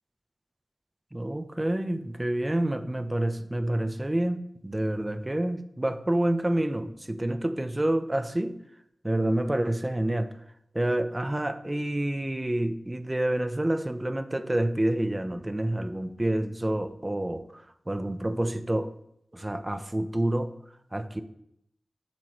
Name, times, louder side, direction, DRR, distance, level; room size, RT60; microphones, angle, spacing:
voice 1, 1.1-8.6 9.0-10.3 10.7-18.9 19.3-20.6 20.9-21.2, right 1 dB, 25° right, 9 dB, 0.9 m, -28 dB
11.5 x 7.8 x 3.3 m, 0.75 s
cardioid pair, 45°, 0 cm